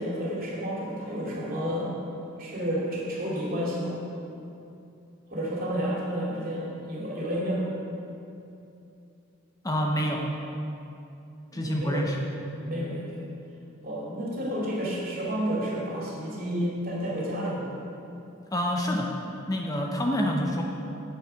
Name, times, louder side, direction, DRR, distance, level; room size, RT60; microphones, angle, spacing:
voice 1, 0.0-1.9 2.4-4.0 5.3-7.7 11.5-12.0 12.6-13.2 13.8-17.7, equal, 45° right, -4 dB, 2.7 m, -30 dB
voice 2, 9.6-10.3 11.5-12.2 18.5-19.1 19.5-20.6, equal, 15° left, 0 dB, 0.8 m, -27 dB
9.6 x 8.7 x 5.7 m, 2.7 s
head